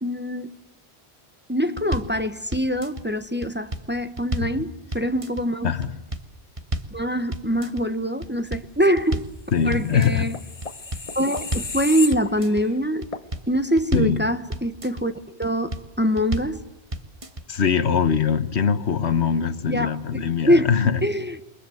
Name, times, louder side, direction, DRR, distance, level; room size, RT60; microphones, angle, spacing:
voice 1, 0.0-0.6 1.5-5.7 6.9-9.3 9.6-10.4 11.1-13.1 13.5-15.1 15.4-16.6 19.7-20.0 20.4-20.7 21.0-21.4, equal, 10° right, 1.1 m, -24 dB
sound 1, 1.8-2.2 2.5-3.0 3.4-4.6 4.9-5.4 5.8-6.3 6.6-7.0 7.3-7.8 8.2-9.4 9.7-10.2 10.6-11.8 12.1-12.6 13.0-14.2 14.5-15.0 15.4-15.9 16.2-16.6 16.9-17.4, right 1 dB, 30° right, 1.4 m, -31 dB
voice 2, 9.5-10.3 13.9-14.2 17.5-21.0, left 7 dB, 85° left, 1.5 m, -22 dB
sound 2, 9.8-12.7 13.1-13.3, left 4 dB, 35° left, 1.1 m, -34 dB
29.0 x 23.5 x 7.9 m
omnidirectional pair, 1.1 m